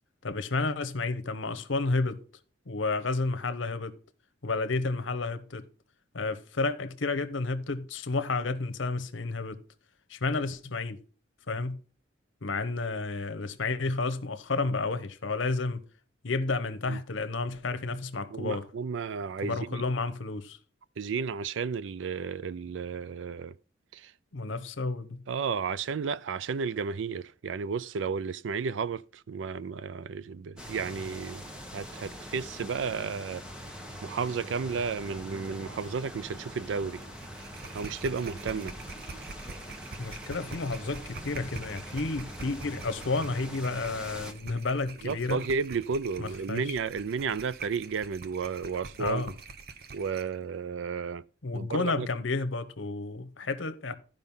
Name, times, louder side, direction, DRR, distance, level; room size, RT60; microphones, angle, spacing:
voice 1, 0.2-2.2 2.7-3.9 4.4-5.6 6.1-9.6 10.1-11.0 11.5-11.8 12.4-15.8 16.2-18.7 19.4-20.6 24.3-25.2 40.0-45.4 46.2-46.8 49.0-49.3 51.4-53.9, left 3 dB, 80° left, 0.9 m, -31 dB
voice 2, 18.3-19.8 21.0-23.5 23.9-24.1 25.3-31.4 31.7-33.4 34.0-37.0 37.7-38.7 45.0-49.3 49.9-51.2 51.5-52.1, right 5 dB, 75° right, 0.4 m, -33 dB
sound 1, 30.6-44.3, equal, 5° right, 1.2 m, -43 dB
sound 2, 37.0-50.4, right 4 dB, 50° right, 0.8 m, -45 dB
12.5 x 5.3 x 5.4 m
head